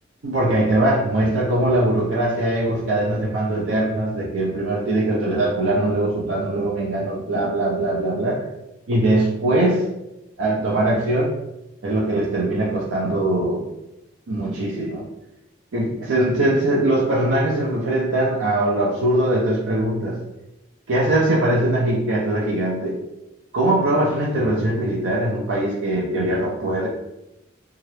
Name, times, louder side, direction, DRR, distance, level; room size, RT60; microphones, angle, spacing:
voice 1, 0.2-8.5 8.9-9.9 10.4-11.3 11.8-13.6 14.3-15.0 15.7-20.2 20.9-23.0 23.5-26.9, right 1 dB, 90° right, -4 dB, 0.5 m, -21 dB
2.8 x 2.4 x 3.2 m, 0.92 s
head